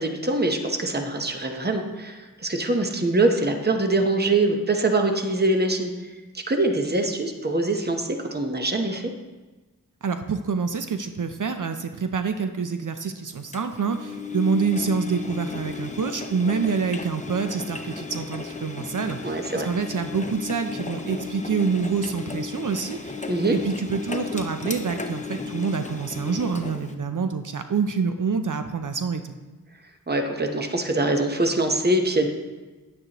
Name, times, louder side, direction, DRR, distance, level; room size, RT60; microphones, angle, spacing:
voice 1, 0.0-5.9 6.3-9.1 19.2-19.7 23.3-23.6 30.1-32.3, right 2 dB, 30° right, 4 dB, 0.9 m, -23 dB
voice 2, 10.0-23.2 23.5-29.3, right 5 dB, 65° right, 8 dB, 0.6 m, -27 dB
Engine, 13.5-26.9, left 4 dB, 20° left, 0.7 m, -34 dB
9.5 x 9.1 x 3.0 m, 1.2 s
wide cardioid pair, 50°, 34 cm